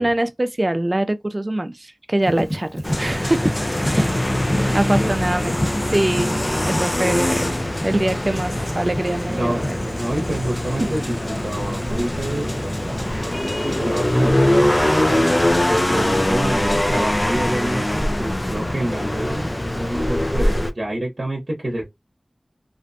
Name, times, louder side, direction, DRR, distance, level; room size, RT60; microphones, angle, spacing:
voice 1, 0.0-3.5 3.9-4.3 4.7-5.6 5.8-7.5 7.8-10.4, right 1 dB, 40° right, 0.4 m, -24 dB
Livestock farm animals working animals, 2.2-20.7, equal, 10° left, 1.1 m, -33 dB
sound 1, 2.8-20.7, left 1 dB, 30° left, 0.4 m, -22 dB
voice 2, 3.9-5.5 9.3-15.3 15.6-21.9, right 1 dB, 65° right, 0.8 m, -28 dB
2.5 x 2.1 x 2.5 m
wide cardioid pair, 40°, 0 cm